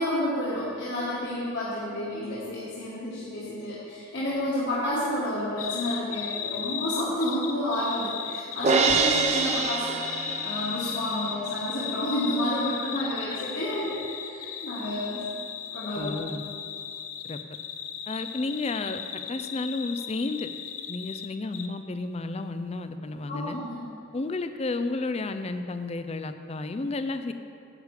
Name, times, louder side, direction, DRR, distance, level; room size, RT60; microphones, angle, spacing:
voice 1, 0.0-15.2 15.7-16.2 23.3-23.8, left 1 dB, 55° left, -9 dB, 1.8 m, -30 dB
sound 1, 5.6-21.3 21.5-21.7, left 8 dB, 85° left, 0.6 m, -36 dB
Crash cymbal, 8.6-10.9, right 4 dB, 30° right, 0.5 m, -25 dB
voice 2, 16.0-16.4 17.2-17.4 18.1-20.5 20.9-23.6 24.1-27.3, left 3 dB, 30° left, 9 dB, 0.4 m, -32 dB
9.8 x 8.1 x 4.9 m, 2.4 s
head